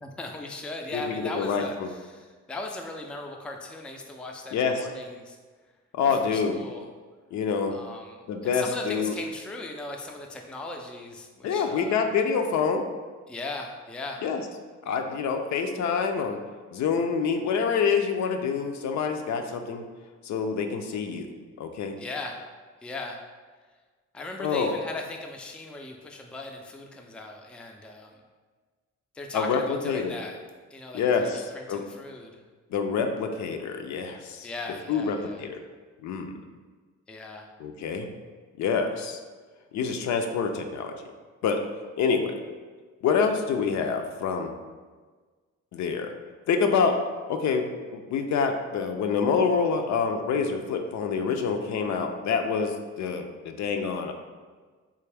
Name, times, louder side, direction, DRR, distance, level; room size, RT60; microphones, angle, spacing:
voice 1, 0.0-5.4 6.1-6.9 7.7-12.0 13.3-14.2 22.0-22.4 22.8-23.2 24.1-28.2 29.1-30.4 30.7-32.4 34.4-35.4 37.1-37.5, left 2 dB, 5° left, 2 dB, 0.3 m, -38 dB
voice 2, 0.9-1.9 4.5-4.9 5.9-6.6 7.3-7.8 8.3-9.1 11.4-12.9 14.2-14.4 14.9-16.4 16.7-19.8 20.2-21.3 21.6-22.0 24.4-24.8 29.3-30.2 30.9-31.8 32.7-34.5 34.9-35.6 36.0-36.4 37.6-38.1 38.6-39.2 39.7-41.0 41.4-41.7 42.0-42.4 43.0-44.5 45.7-46.1 46.5-47.0 47.3-54.1, left 5 dB, 65° left, 5 dB, 0.5 m, -26 dB
3.5 x 2.5 x 3.3 m, 1.4 s
cardioid pair, 90°, 30 cm